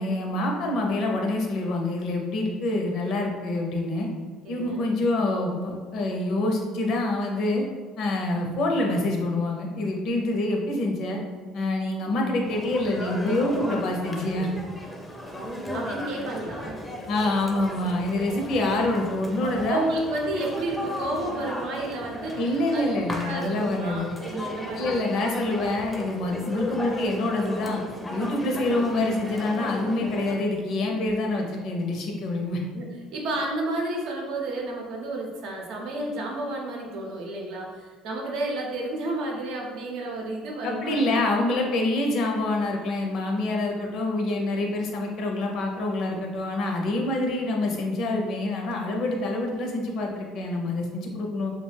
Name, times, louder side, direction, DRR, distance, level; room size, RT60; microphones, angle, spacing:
voice 1, 0.0-4.1 4.5-7.6 8.0-11.2 11.5-14.5 17.1-19.8 22.4-24.2 24.8-27.8 28.1-32.6 40.6-51.5, left 2 dB, 60° left, 1 dB, 0.6 m, -26 dB
voice 2, 4.4-4.8 15.7-16.8 19.5-22.9 23.2-25.1 32.7-41.2, right 2 dB, 70° right, 0 dB, 0.6 m, -31 dB
sound 1, 12.4-30.3, equal, 10° left, 0.5 m, -36 dB
2.4 x 2.2 x 3.3 m, 1.5 s
supercardioid pair, 75°, 0 cm